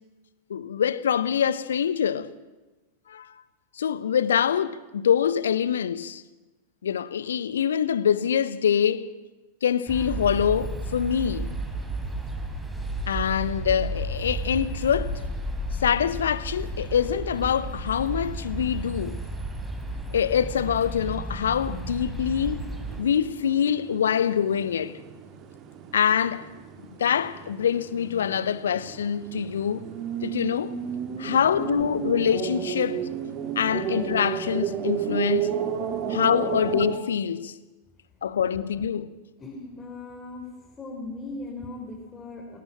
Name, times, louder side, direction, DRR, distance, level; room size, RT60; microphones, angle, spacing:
voice 1, 0.5-2.3 3.1-3.3 3.8-6.2 6.8-9.1 9.6-11.5 13.1-15.2 15.8-19.2 20.1-22.6 23.0-24.9 25.9-26.5 26.8-29.9 30.2-30.8 31.2-33.1 33.6-35.5 36.1-37.5 38.2-39.1, left 8 dB, 65° left, 0.9 m, -25 dB
sound 1, 9.9-23.0, right 1 dB, 10° right, 3.4 m, -33 dB
sound 2, 22.9-37.0, right 8 dB, 35° right, 2.2 m, -33 dB
voice 2, 39.4-40.5 40.8-42.6, left 2 dB, 15° left, 4.2 m, -38 dB
21.0 x 18.5 x 7.5 m
figure-of-eight pair, 90°, 0 cm